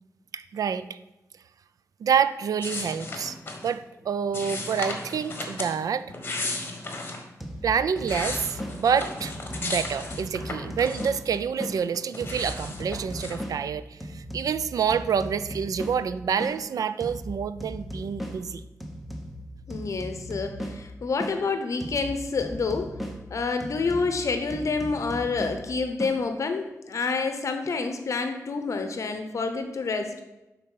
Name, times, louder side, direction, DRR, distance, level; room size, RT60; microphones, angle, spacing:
voice 1, 0.3-1.0 2.0-3.4 3.6-6.1 7.6-9.3 9.6-18.6, right 7 dB, 80° right, 14 dB, 0.4 m, -27 dB
sound 1, 2.6-3.7 4.3-5.7 6.1-7.2 7.8-11.4 11.7-13.4, left 2 dB, 35° left, 1.3 m, -35 dB
sound 2, 7.4-11.8 12.2-16.6 17.0-21.4 21.8-26.2, equal, ahead, 0.9 m, -38 dB
voice 2, 19.7-23.0 23.3-30.2, left 4 dB, 60° left, 6 dB, 0.7 m, -28 dB
11.0 x 4.0 x 5.5 m, 1.0 s
wide cardioid pair, 145°, 6 cm